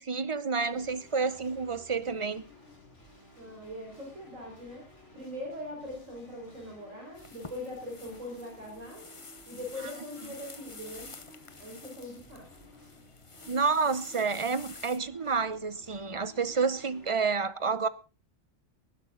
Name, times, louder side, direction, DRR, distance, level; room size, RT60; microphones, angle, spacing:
voice 1, 0.0-2.4 13.5-17.9, right 4 dB, 30° right, 0.7 m, -29 dB
sound 1, 0.6-17.1, left 1 dB, 65° left, 6.0 m, -55 dB
voice 2, 3.4-4.9 5.1-9.1 9.5-11.1 11.6-12.7, left 1 dB, 85° right, 5.6 m, -41 dB
sound 2, 7.1-15.0, left 3 dB, 25° left, 1.1 m, -50 dB
19.0 x 10.5 x 3.9 m
omnidirectional pair, 1.3 m